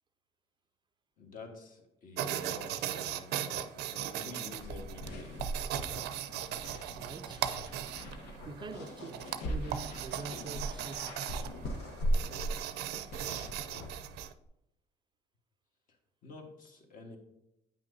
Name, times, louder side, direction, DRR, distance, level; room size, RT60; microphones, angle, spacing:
voice 1, 1.2-5.3 16.2-17.2, left 3 dB, 55° left, 1.5 m, -49 dB
sound 1, 2.2-14.3, right 10 dB, 80° right, 0.5 m, -38 dB
sound 2, 4.6-14.4, equal, 85° left, 1.2 m, -39 dB
voice 2, 7.0-7.7 8.5-11.5, right 3 dB, 25° right, 0.4 m, -46 dB
9.0 x 5.8 x 2.7 m
cardioid pair, 110°, 17 cm